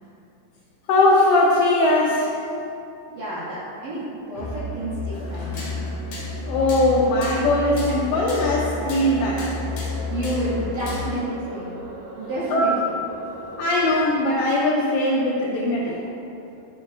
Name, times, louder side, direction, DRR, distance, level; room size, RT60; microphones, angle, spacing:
voice 1, 0.9-2.3 6.5-9.5 12.5-12.7 13.6-16.0, left 1 dB, 80° left, -4 dB, 2.6 m, -20 dB
voice 2, 3.1-5.9 10.1-11.7 12.1-12.9, right 1 dB, 55° right, -10 dB, 2.5 m, -30 dB
Musical instrument, 4.4-11.2, left 3 dB, 65° left, 2.9 m, -31 dB
sound 1, 5.1-11.2, left 1 dB, 45° left, 2.5 m, -38 dB
sound 2, 6.6-14.3, right 2 dB, 85° right, 2.1 m, -40 dB
12.5 x 8.5 x 2.4 m, 2.8 s
omnidirectional pair, 5.8 m